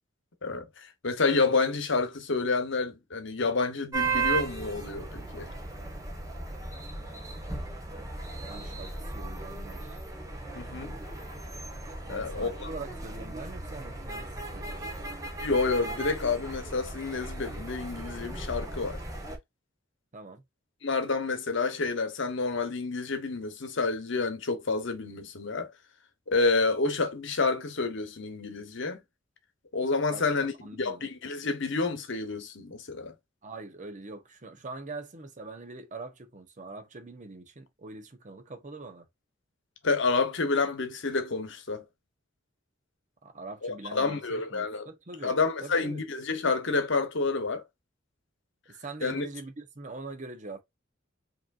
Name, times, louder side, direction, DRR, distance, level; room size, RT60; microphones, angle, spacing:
voice 1, 0.4-5.5 10.5-10.9 12.1-12.7 15.4-19.0 20.8-25.7 26.3-29.0 29.7-30.5 30.8-33.1 39.8-41.8 43.6-44.9 45.2-47.6 49.0-49.3, left 3 dB, 65° left, 1.0 m, -29 dB
sound 1, 3.9-19.4, right 3 dB, 15° right, 1.2 m, -36 dB
voice 2, 8.4-10.0 12.1-15.1 20.1-20.4 30.1-31.1 33.4-39.1 43.2-46.0 48.7-50.6, right 3 dB, 40° right, 0.9 m, -43 dB
5.0 x 3.0 x 2.5 m
head